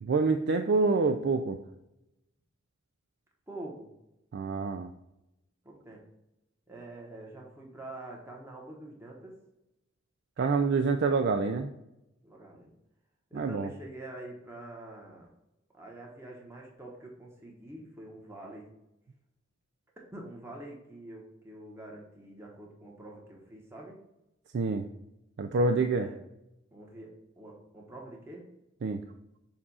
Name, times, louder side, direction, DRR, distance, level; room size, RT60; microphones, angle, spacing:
voice 1, 0.0-1.6 4.3-4.9 10.4-11.7 13.3-13.7 24.5-24.9 25.4-26.1 28.8-29.0, right 4 dB, 55° right, 6 dB, 0.4 m, -27 dB
voice 2, 3.5-3.9 5.6-6.0 6.7-9.4 12.2-12.7 13.3-15.3 15.7-18.7 20.1-24.0 25.9-26.2 26.7-28.5, right 1 dB, 10° right, -2 dB, 1.0 m, -46 dB
7.2 x 2.4 x 5.4 m, 0.89 s
head